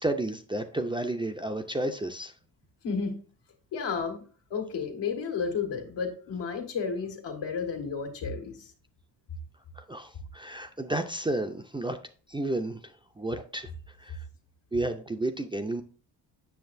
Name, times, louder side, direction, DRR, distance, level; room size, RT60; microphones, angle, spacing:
voice 1, 0.0-2.3 9.8-12.0 12.3-14.2 14.7-15.8, right 1 dB, 10° right, 0.4 m, -32 dB
voice 2, 3.7-8.7, left 5 dB, 80° left, 1.7 m, -32 dB
8.0 x 6.4 x 2.6 m
cardioid pair, 105°, 42 cm